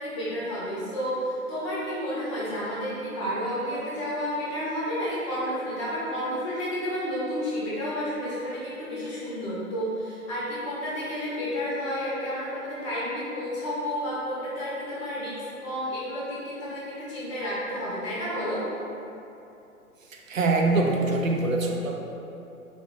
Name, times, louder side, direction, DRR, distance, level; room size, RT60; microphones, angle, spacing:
voice 1, 0.0-18.7, equal, 20° left, -8 dB, 0.8 m, -31 dB
voice 2, 20.1-22.0, right 2 dB, 65° right, 1 dB, 0.5 m, -24 dB
3.9 x 2.3 x 3.5 m, 2.8 s
figure-of-eight pair, 130°, 43 cm